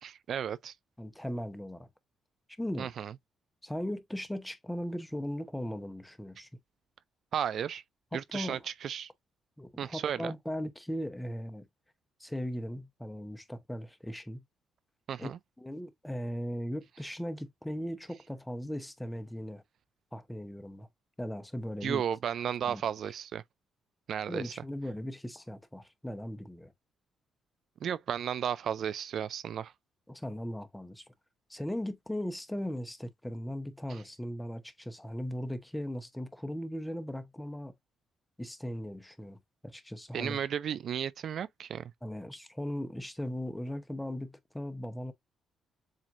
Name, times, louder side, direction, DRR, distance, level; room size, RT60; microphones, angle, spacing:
voice 1, 0.0-0.7 2.8-3.1 7.3-7.8 8.1-9.1 9.8-10.3 15.1-15.4 21.8-23.4 24.1-24.5 27.8-29.7 33.9-34.0 40.1-41.9, right 9 dB, 65° right, 0.3 m, -34 dB
voice 2, 1.0-1.9 2.6-2.9 3.6-6.5 8.1-8.6 9.6-11.6 12.2-14.4 15.2-15.3 15.6-19.6 20.1-20.9 21.2-22.0 22.6-22.8 24.3-26.7 30.1-31.1 31.5-37.7 38.4-40.4 42.0-45.1, equal, 5° left, 0.8 m, -38 dB
7.4 x 2.6 x 2.4 m
cardioid pair, 90°, 0 cm